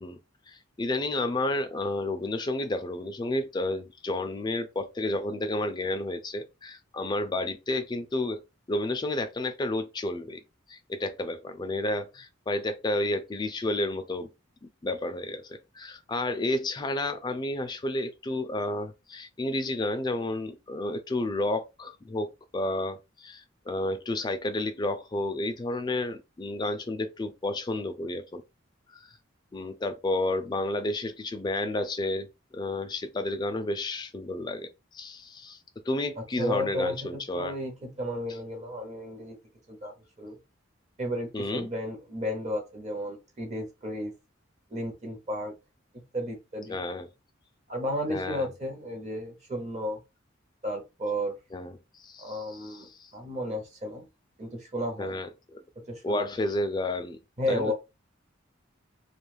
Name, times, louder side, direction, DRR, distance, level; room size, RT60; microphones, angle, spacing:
voice 1, 0.5-8.4 8.7-10.4 10.7-14.3 14.8-28.4 28.9-29.0 29.5-32.3 32.5-35.6 35.9-37.6 41.3-41.7 46.7-47.1 48.1-48.5 51.5-51.7 52.0-53.1 55.0-55.6 56.0-57.2 57.5-57.7, left 2 dB, 20° left, 0.3 m, -31 dB
voice 2, 36.2-39.4 39.7-40.4 41.0-44.1 44.7-45.5 46.1-46.8 47.7-50.0 50.6-51.3 52.2-54.1 54.4-55.1 55.9-56.2 57.4-57.7, equal, 35° right, 0.7 m, -33 dB
2.3 x 2.3 x 3.1 m
head